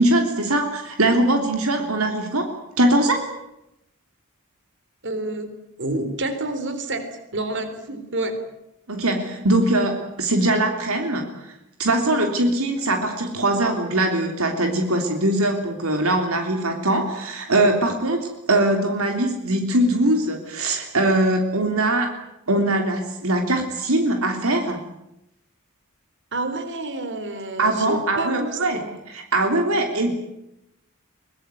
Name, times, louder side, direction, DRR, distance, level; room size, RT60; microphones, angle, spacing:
voice 1, 0.0-3.3 8.9-11.5 11.8-22.1 22.5-24.8 27.6-30.2, right 1 dB, 75° right, 4 dB, 3.3 m, -21 dB
voice 2, 5.0-5.5 5.8-8.4 26.3-28.9, right 2 dB, 60° right, 10 dB, 3.8 m, -28 dB
23.5 x 20.5 x 9.3 m, 0.84 s
head